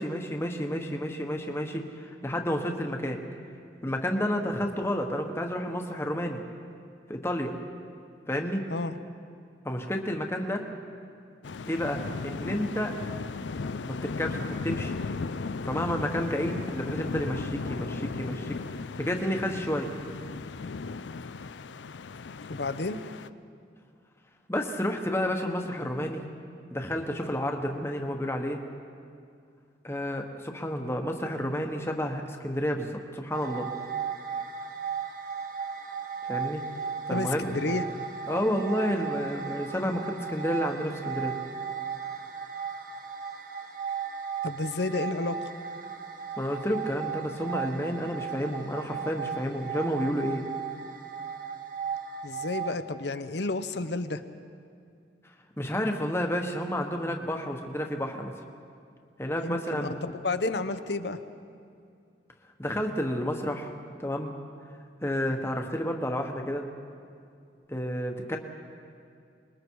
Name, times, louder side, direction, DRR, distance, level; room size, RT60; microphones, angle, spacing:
voice 1, 0.0-3.2 3.8-6.4 7.1-7.5 8.3-8.6 9.6-10.6 11.7-12.9 13.9-14.4 14.6-14.9 15.6-19.9 24.5-26.2 26.7-28.6 29.8-33.7 36.2-36.6 37.1-37.9 38.3-41.4 46.4-50.4 55.6-58.3 59.2-60.0 62.6-63.7 64.0-64.3 65.0-66.7 67.7-68.4, equal, 15° left, 3 dB, 1.2 m, -30 dB
sound 1, 11.4-23.3, left 4 dB, 85° left, 0.5 m, -36 dB
voice 2, 22.5-23.0 37.1-37.8 44.4-45.4 52.2-54.2 59.4-61.2, left 3 dB, 70° left, 10 dB, 0.9 m, -31 dB
sound 2, 33.3-52.8, right 7 dB, 50° right, 1.3 m, -36 dB
26.5 x 21.0 x 4.7 m, 2.4 s
head